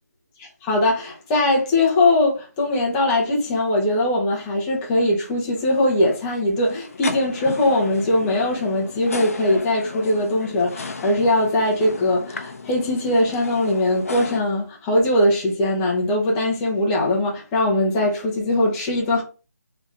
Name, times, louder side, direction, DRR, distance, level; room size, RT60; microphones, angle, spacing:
voice 1, 0.4-19.2, left 1 dB, 10° left, 0.8 m, -21 dB
sound 1, 5.5-14.4, left 3 dB, 55° left, 0.7 m, -34 dB
3.6 x 3.4 x 3.8 m
hypercardioid pair, 170°, 9 cm